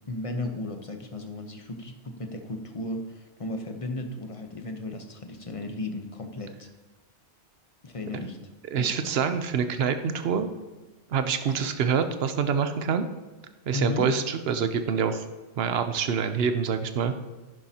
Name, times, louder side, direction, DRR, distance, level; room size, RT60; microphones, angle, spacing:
voice 1, 0.1-6.7 7.8-8.4 8.8-9.1 11.4-11.6 13.7-14.1, left 2 dB, 30° left, 5 dB, 0.9 m, -35 dB
voice 2, 8.7-10.5 11.1-13.0 13.7-15.2 15.6-17.2, right 6 dB, 65° right, 9 dB, 1.0 m, -26 dB
11.0 x 10.5 x 2.9 m, 1.2 s
omnidirectional pair, 1.1 m